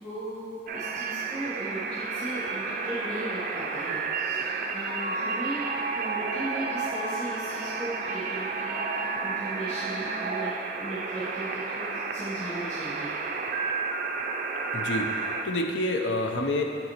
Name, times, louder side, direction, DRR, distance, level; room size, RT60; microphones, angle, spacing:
voice 1, 0.0-13.1, right 1 dB, 10° left, -13 dB, 1.6 m, -37 dB
sound 1, 0.7-15.4, right 4 dB, 45° right, 0.3 m, -31 dB
voice 2, 14.7-16.6, left 2 dB, 70° left, 3 dB, 0.5 m, -28 dB
7.2 x 6.6 x 2.9 m, 2.6 s
head